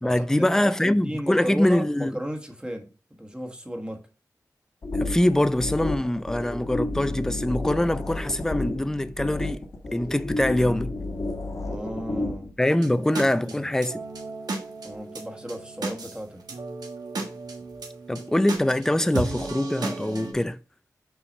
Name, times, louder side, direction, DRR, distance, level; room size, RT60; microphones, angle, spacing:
voice 1, 0.0-2.2 5.0-10.9 12.6-14.0 18.1-20.6, left 1 dB, 10° left, 0.4 m, -24 dB
voice 2, 0.6-2.9 3.2-4.0 11.6-12.5 12.9-13.6 14.8-16.4, equal, 15° right, 1.5 m, -34 dB
sound 1, 4.8-12.5, left 2 dB, 60° left, 1.5 m, -31 dB
sound 2, 12.8-20.3, right 3 dB, 85° right, 1.5 m, -35 dB
5.8 x 4.8 x 5.3 m
wide cardioid pair, 80°, 7 cm